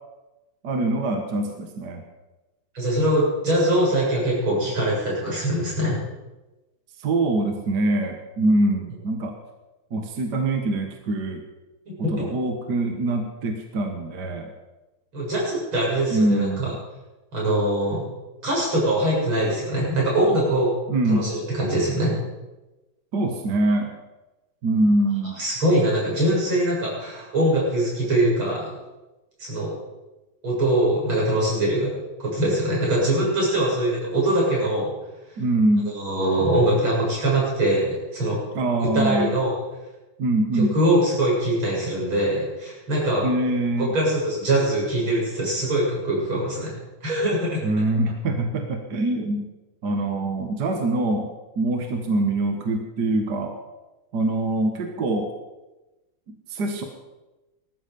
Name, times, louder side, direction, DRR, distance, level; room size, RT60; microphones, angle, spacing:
voice 1, 0.6-2.0 7.0-9.3 9.9-11.4 12.1-14.5 16.1-16.8 20.9-21.3 23.1-23.9 24.6-25.4 35.4-35.9 38.6-39.4 40.2-40.7 43.2-43.9 47.6-49.5 49.8-51.3 51.6-53.6 54.1-55.3 56.3-56.8, right 2 dB, 55° right, 4 dB, 1.9 m, -24 dB
voice 2, 2.7-6.0 11.9-12.2 15.1-16.7 17.3-18.0 18.4-20.7 21.1-22.2 25.4-28.7 29.4-29.7 30.4-31.9 32.2-34.9 35.9-38.4 38.8-39.5 40.7-43.3 43.8-46.7 47.0-47.6, right 1 dB, 90° right, -4 dB, 8.1 m, -22 dB
20.0 x 13.5 x 5.3 m, 1.1 s
omnidirectional pair, 2.2 m